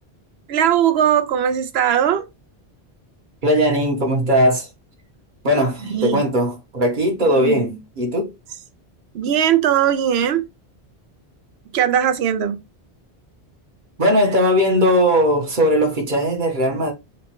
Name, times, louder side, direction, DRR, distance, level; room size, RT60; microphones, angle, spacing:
voice 1, 0.5-2.3 5.9-6.2 7.4-7.8 9.1-10.5 11.7-12.6, right 9 dB, 75° right, 0.8 m, -19 dB
voice 2, 3.4-4.7 5.4-8.3 14.0-16.9, equal, 50° right, 1.1 m, -18 dB
4.1 x 2.2 x 2.9 m
omnidirectional pair, 1.1 m